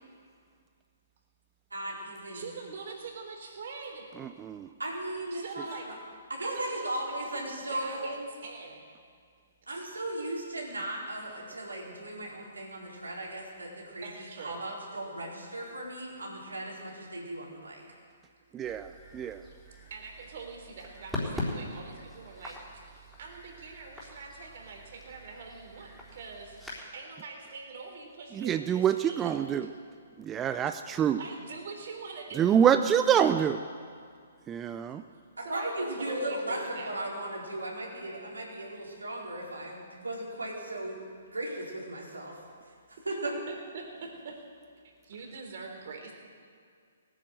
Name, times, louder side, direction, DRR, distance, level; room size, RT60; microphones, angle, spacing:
voice 1, 1.7-2.4 4.8-5.9 6.3-8.3 9.7-17.8 35.4-41.0 41.3-42.4 43.0-43.3, right 1 dB, 90° right, -3 dB, 4.2 m, -37 dB
voice 2, 2.3-4.1 5.3-5.9 6.4-6.9 7.2-8.8 9.7-9.8 14.0-14.6 19.5-19.6 19.9-26.6 26.9-29.7 31.2-32.6 33.1-33.2 35.4-36.9 43.5-44.4 45.0-46.1, right 4 dB, 55° right, 2 dB, 3.6 m, -43 dB
voice 3, 4.2-4.7 18.5-19.4 28.4-29.7 30.2-31.2 32.4-33.6 34.5-35.0, right 8 dB, 20° right, 9 dB, 0.5 m, -26 dB
sound 1, 18.6-26.8, left 1 dB, ahead, 3.9 m, -42 dB
18.0 x 9.9 x 7.8 m, 2.1 s
figure-of-eight pair, 130°, 0 cm